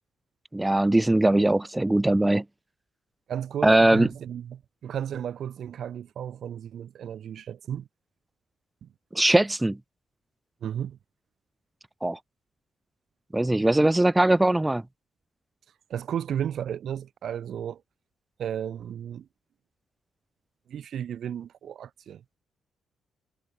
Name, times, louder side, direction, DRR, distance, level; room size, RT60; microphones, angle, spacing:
voice 1, 0.5-2.4 3.6-4.1 9.1-9.8 12.0-12.2 13.3-14.8, right 1 dB, 10° right, 1.5 m, -21 dB
voice 2, 3.3-7.9 8.8-8.9 10.6-11.0 15.9-17.8 18.4-19.3 20.7-22.4, right 9 dB, 65° right, 3.2 m, -34 dB
cardioid pair, 90°, 0 cm